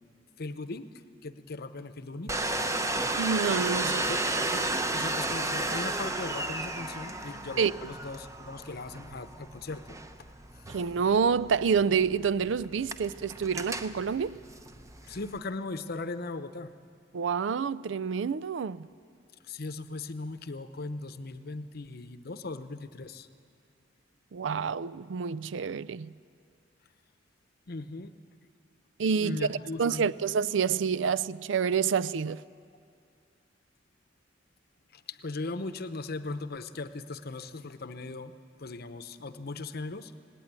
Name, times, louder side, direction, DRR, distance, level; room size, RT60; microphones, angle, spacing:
voice 1, 0.4-0.9 1.2-2.4 4.1-4.2 4.9-10.0 15.0-16.7 19.4-23.3 27.7-28.1 29.2-30.1 34.9-40.1, left 3 dB, 55° left, 0.8 m, -38 dB
Domestic sounds home sounds, 2.3-15.4, right 2 dB, 15° right, 0.8 m, -33 dB
voice 2, 3.2-4.1 7.6-7.7 10.7-14.4 17.1-18.9 24.3-26.1 29.0-32.4, right 6 dB, 80° right, 0.4 m, -28 dB
18.5 x 18.0 x 9.7 m
head